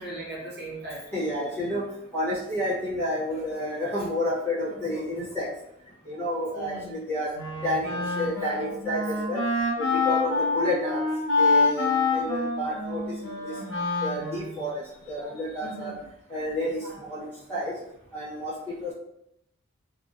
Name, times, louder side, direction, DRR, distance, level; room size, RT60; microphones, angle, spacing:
voice 1, 0.0-1.1 6.5-6.9 15.6-15.9, right 2 dB, 50° right, -6 dB, 0.9 m, -38 dB
voice 2, 1.1-1.8 2.1-5.5 6.1-7.3 7.6-9.4 9.8-11.0 11.3-13.6 14.0-15.9 16.3-17.7 18.1-18.9, left 1 dB, 10° left, -9 dB, 1.0 m, -30 dB
Wind instrument woodwind instrument, 7.3-14.7, left 3 dB, 90° left, 0.8 m, -26 dB
2.4 x 2.2 x 2.6 m, 0.78 s
head